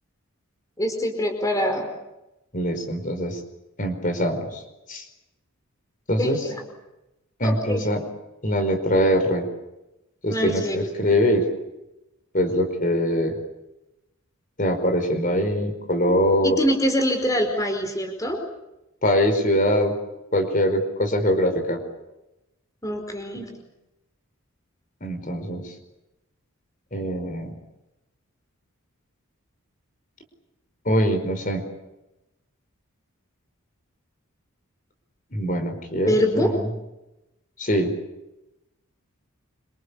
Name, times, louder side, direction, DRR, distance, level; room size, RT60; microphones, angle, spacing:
voice 1, 0.8-1.9 6.2-6.6 7.4-7.8 10.3-10.8 16.4-18.4 22.8-23.5 36.1-36.5, equal, 15° left, 4 dB, 4.8 m, -24 dB
voice 2, 2.5-3.4 3.8-4.6 4.9-5.0 6.1-6.4 7.4-8.0 8.4-9.5 10.2-11.5 12.3-13.3 14.6-16.6 19.0-20.0 20.3-21.8 25.0-25.7 26.9-27.5 30.8-31.6 35.3-36.7 37.6-37.9, equal, 35° left, 6 dB, 4.9 m, -23 dB
27.5 x 26.5 x 7.0 m, 0.93 s
head